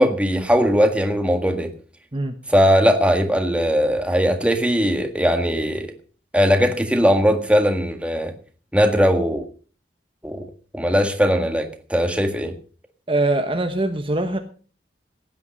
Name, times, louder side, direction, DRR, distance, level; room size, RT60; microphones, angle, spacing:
voice 1, 0.0-1.7 2.5-5.9 6.3-8.3 8.7-9.4 10.2-10.4 10.7-12.5, equal, 5° right, 5 dB, 1.7 m, -19 dB
voice 2, 13.1-14.4, right 2 dB, 30° right, 5 dB, 1.2 m, -22 dB
16.5 x 9.4 x 5.2 m, 0.39 s
head